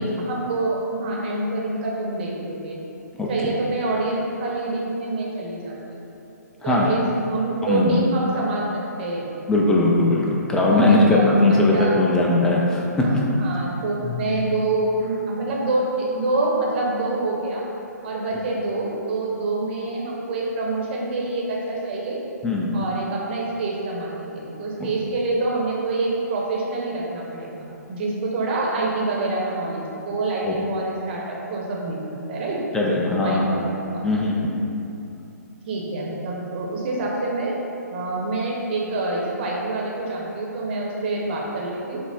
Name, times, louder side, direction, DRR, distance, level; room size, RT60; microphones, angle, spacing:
voice 1, 0.0-2.8 3.3-6.0 6.6-9.3 10.7-12.0 13.0-17.6 18.0-22.2 22.7-32.0 32.3-32.6 33.2-34.1 35.7-37.6 37.9-42.0, right 2 dB, 35° right, -3 dB, 0.8 m, -26 dB
voice 2, 7.6-8.0 9.5-12.9 14.0-14.4 22.4-22.7 24.8-24.9 30.5-30.6 32.7-33.5 34.0-34.6, left 2 dB, 5° left, -3 dB, 0.4 m, -19 dB
5.9 x 2.0 x 3.5 m, 2.9 s
figure-of-eight pair, 130°, 9 cm